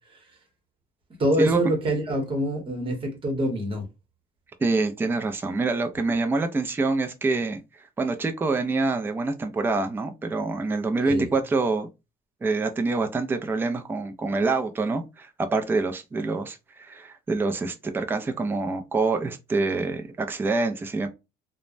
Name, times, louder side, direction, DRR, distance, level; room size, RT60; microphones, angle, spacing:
voice 1, 1.2-3.8 11.1-11.3, right 1 dB, 30° right, 1.0 m, -25 dB
voice 2, 4.6-7.6 8.0-11.9 12.4-21.1, right 3 dB, 10° right, 0.4 m, -26 dB
3.0 x 2.1 x 2.4 m
cardioid pair, 150°, 19 cm